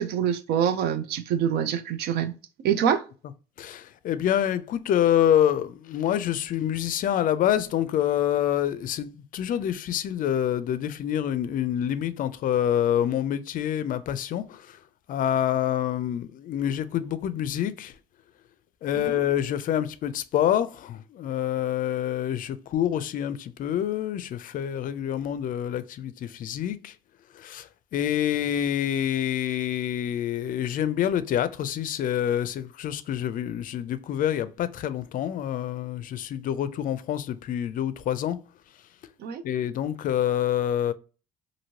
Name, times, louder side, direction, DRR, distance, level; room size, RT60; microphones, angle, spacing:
voice 1, 0.0-2.3 2.6-3.1 18.9-19.2 39.2-39.4, right 8 dB, 75° right, 0.5 m, -25 dB
voice 2, 3.6-14.8 15.1-17.9 18.8-26.9 27.3-38.4 39.4-40.9, left 10 dB, 55° left, 0.4 m, -27 dB
2.9 x 2.6 x 2.8 m
cardioid pair, 110°, 17 cm